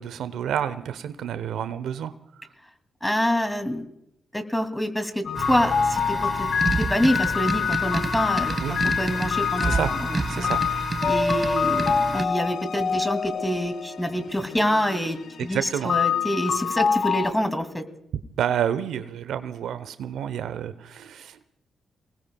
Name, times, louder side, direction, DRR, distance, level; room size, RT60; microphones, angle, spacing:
voice 1, 0.0-2.1 8.6-8.8 9.6-10.0 10.3-10.6 15.5-15.9 18.4-21.5, right 9 dB, 75° right, 13 dB, 0.7 m, -29 dB
voice 2, 3.0-3.9 4.3-6.5 6.8-10.5 11.0-17.8, equal, 10° left, 8 dB, 2.6 m, -26 dB
sound 1, 5.3-17.3, left 7 dB, 65° left, 0.6 m, -27 dB
sound 2, 5.4-12.3, right 3 dB, 35° right, 1.1 m, -29 dB
Mallet percussion, 11.0-13.1, left 1 dB, 50° left, 4.8 m, -29 dB
29.0 x 19.5 x 2.3 m, 0.75 s
hypercardioid pair, 40°, 0 cm